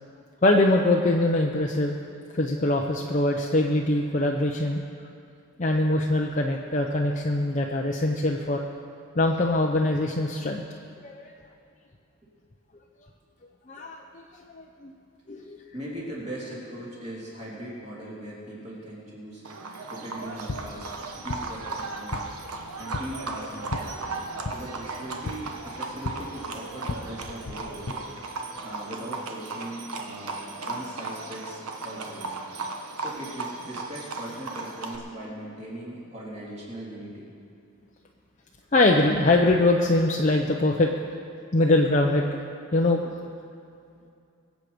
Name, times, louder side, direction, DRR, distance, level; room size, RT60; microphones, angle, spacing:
voice 1, 0.4-2.0 2.3-4.8 5.6-8.6 9.2-10.6 11.0-11.3 13.7-14.2 14.5-14.9 15.3-15.6 38.7-40.9 41.5-42.4 42.7-43.1, left 2 dB, 35° left, 0 dB, 0.7 m, -23 dB
voice 2, 15.7-19.4 19.9-20.9 21.1-22.3 22.8-24.2 24.5-28.1 28.6-32.5 33.0-37.3, right 1 dB, 30° right, -6 dB, 3.5 m, -39 dB
Livestock farm animals working animals, 19.4-35.0, right 3 dB, 90° right, 1.3 m, -36 dB
sound 1, 20.2-27.9, left 3 dB, 75° left, 0.7 m, -38 dB
22.5 x 8.2 x 5.2 m, 2.5 s
head